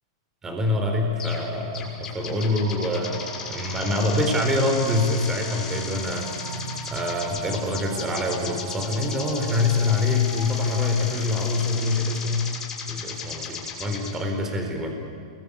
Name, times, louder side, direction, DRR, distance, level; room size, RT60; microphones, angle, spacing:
voice 1, 0.4-3.2 3.5-6.6 6.9-12.5 12.9-14.9, left 2 dB, 15° right, 3 dB, 4.3 m, -25 dB
sound 1, 1.2-1.5 1.7-14.1, left 5 dB, 20° left, 6.7 m, -36 dB
sound 2, 2.4-10.9, right 1 dB, 75° right, 6.4 m, -40 dB
28.0 x 22.5 x 8.8 m, 2.2 s
hypercardioid pair, 140°, 3 cm